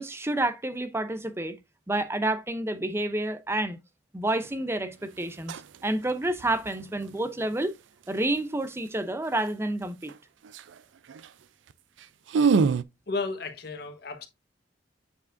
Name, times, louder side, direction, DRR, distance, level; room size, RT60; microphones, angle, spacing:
voice 1, 0.0-1.6 1.9-3.8 4.1-5.5 5.8-7.7 8.1-10.1, right 1 dB, 15° right, 0.6 m, -29 dB
sound 1, 4.4-4.6 5.3-5.8 6.1-6.7 10.1-10.2 10.4-10.8 11.1-11.3 11.7-11.8 12.0-12.8, right 5 dB, 75° right, 0.4 m, -25 dB
voice 2, 13.1-14.3, left 3 dB, 60° left, 1.3 m, -33 dB
8.3 x 4.6 x 2.6 m
head